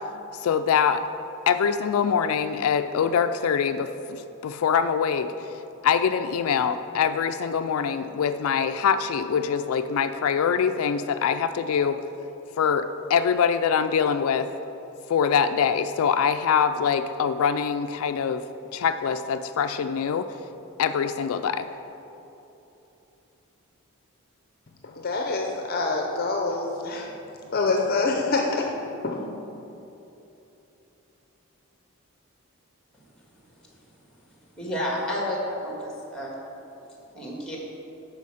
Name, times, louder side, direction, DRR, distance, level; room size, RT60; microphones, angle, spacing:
voice 1, 0.4-1.0 1.5-5.5 5.8-12.0 12.6-14.5 15.1-18.4 18.7-20.3 20.8-21.7, left 7 dB, 80° left, 10 dB, 0.3 m, -24 dB
voice 2, 24.8-27.1 27.5-28.7 29.0-29.3, left 3 dB, 45° left, 1 dB, 0.6 m, -26 dB
voice 3, 34.6-36.3 37.1-37.6, left 1 dB, 5° left, -2 dB, 1.8 m, -30 dB
11.0 x 4.5 x 6.3 m, 3.0 s
head